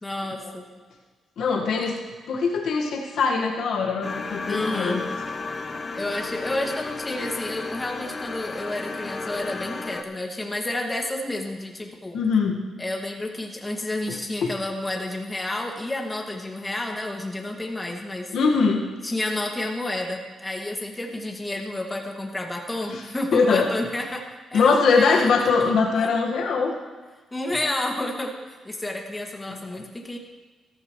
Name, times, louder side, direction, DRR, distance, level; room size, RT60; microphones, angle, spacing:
voice 1, 0.0-0.6 4.4-5.1 5.9-12.2 12.8-18.4 19.0-24.2 24.5-26.1 27.3-30.2, left 1 dB, 15° left, 1 dB, 2.0 m, -30 dB
voice 2, 1.4-2.0 2.3-5.0 7.2-7.3 12.1-12.6 14.4-14.5 18.3-18.8 22.9-23.0 23.3-23.7 24.5-26.7, left 4 dB, 80° left, 0 dB, 1.5 m, -22 dB
sound 1, 4.0-10.0, left 3 dB, 40° left, 0.9 m, -33 dB
15.0 x 14.0 x 3.1 m, 1.4 s
cardioid pair, 80°, 0 cm